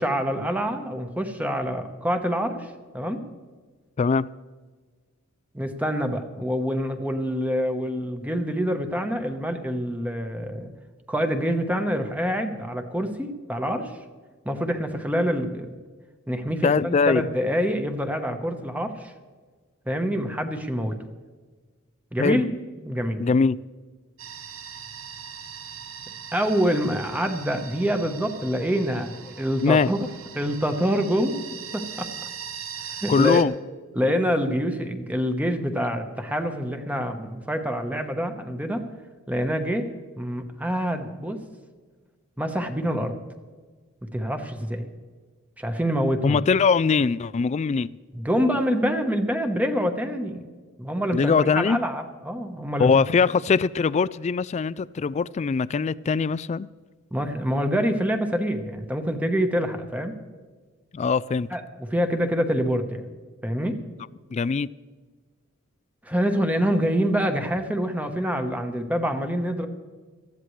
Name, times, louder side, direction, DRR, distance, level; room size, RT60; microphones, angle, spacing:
voice 1, 0.0-2.7 2.9-3.2 5.5-10.7 11.1-13.9 14.4-15.7 16.3-19.1 19.9-20.9 22.1-22.5 22.8-23.2 26.3-30.0 30.3-32.1 32.9-33.4 33.9-38.8 39.3-39.9 40.2-41.4 42.4-43.1 44.1-44.9 45.6-46.4 48.1-50.4 50.8-52.9 57.1-60.2 61.5-63.1 63.4-63.8 66.1-69.7, equal, 5° right, 6 dB, 1.1 m, -26 dB
voice 2, 4.0-4.3 16.6-17.3 22.2-22.4 23.2-23.6 29.6-29.9 33.1-33.5 46.2-48.0 51.1-51.8 52.8-56.7 60.9-61.5 64.3-64.7, left 5 dB, 30° left, 18 dB, 0.3 m, -22 dB
sound 1, 24.2-33.4, right 7 dB, 70° right, 0.9 m, -40 dB
19.0 x 14.0 x 3.2 m, 1.4 s
head